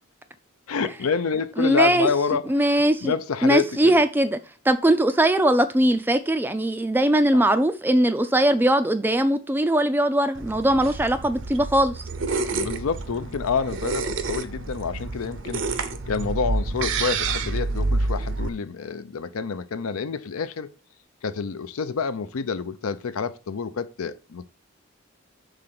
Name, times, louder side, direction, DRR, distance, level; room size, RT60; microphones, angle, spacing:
voice 1, 0.7-2.5 3.0-4.0 7.3-7.4 12.5-15.6 16.1-20.7 21.2-24.4, left 5 dB, 80° left, 0.5 m, -28 dB
voice 2, 1.6-2.1 2.5-3.1 3.4-4.4 4.7-12.0, right 1 dB, 10° right, 0.3 m, -20 dB
sound 1, 10.3-18.5, right 3 dB, 60° right, 0.6 m, -28 dB
5.0 x 3.9 x 5.8 m
head